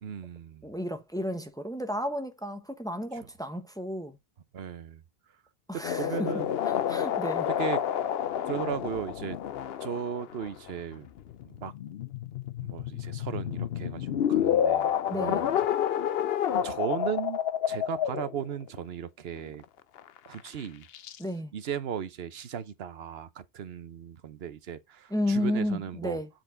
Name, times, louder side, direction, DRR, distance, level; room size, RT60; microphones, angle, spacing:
voice 1, 0.0-0.7 3.1-3.3 4.5-5.0 5.7-6.5 7.6-7.8 8.5-9.4 9.8-11.1 11.4-11.7 12.6-15.5 15.9-16.2 16.6-17.4 17.7-19.6 20.3-20.9 21.5-26.2, right 8 dB, 75° right, 1.0 m, -36 dB
voice 2, 0.6-4.2 5.7-6.3 6.7-7.5 15.1-15.5 21.2-21.5 25.1-26.3, left 1 dB, 5° left, 1.0 m, -32 dB
sound 1, 5.8-18.8 19.5-19.6 20.0-20.5 20.9-21.2, left 9 dB, 75° left, 0.8 m, -29 dB
8.0 x 4.4 x 3.9 m
omnidirectional pair, 1.0 m